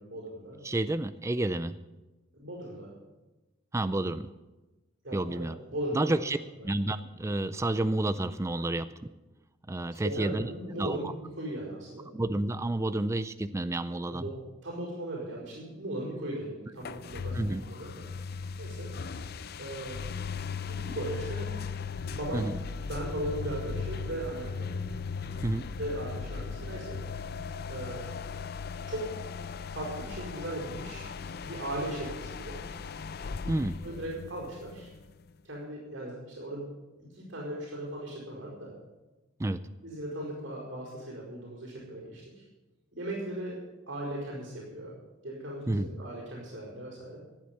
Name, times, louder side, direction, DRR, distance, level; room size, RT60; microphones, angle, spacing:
voice 1, 0.0-0.6 2.3-2.9 5.0-6.1 9.9-12.1 14.1-14.3 14.6-18.1 18.6-18.9 19.6-20.0 20.7-21.5 21.9-22.5 22.8-24.7 25.8-27.0 27.7-28.1 28.9-29.1 29.7-31.1 31.4-32.6 33.8-34.9 35.4-38.7 39.8-42.4 42.9-45.0 45.2-47.2, right 1 dB, 65° right, -5 dB, 4.9 m, -38 dB
voice 2, 0.6-1.8 3.7-4.3 5.1-5.6 5.9-6.4 6.6-9.1 9.7-11.1 12.1-14.3 17.3-17.6 22.3-22.5 25.4-25.6 33.5-33.8 39.4-39.6 45.7-45.9, right 2 dB, 15° right, 12 dB, 0.4 m, -30 dB
sound 1, 16.8-35.3, left 5 dB, 55° left, 0.5 m, -38 dB
15.0 x 8.5 x 7.3 m, 1.1 s
head